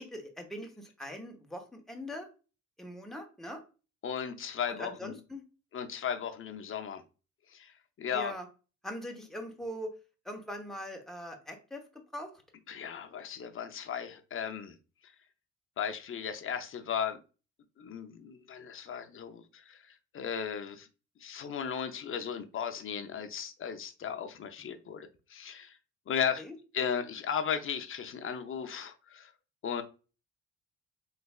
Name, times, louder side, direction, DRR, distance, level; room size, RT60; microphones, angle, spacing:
voice 1, 0.0-2.3 2.8-3.6 4.7-5.4 8.1-8.5 8.8-9.9 10.2-11.8 12.1-12.3 26.4-26.6, equal, ahead, 2 dB, 0.9 m, -41 dB
voice 2, 4.0-5.1 5.7-7.0 7.5-7.7 8.0-8.3 12.7-14.8 15.8-17.2 17.8-19.8 20.1-20.9 21.2-25.8 26.1-26.4 26.7-29.3 29.6-29.8, left 7 dB, 45° left, 6 dB, 0.6 m, -36 dB
3.3 x 3.1 x 2.3 m, 0.33 s
cardioid pair, 90°, 30 cm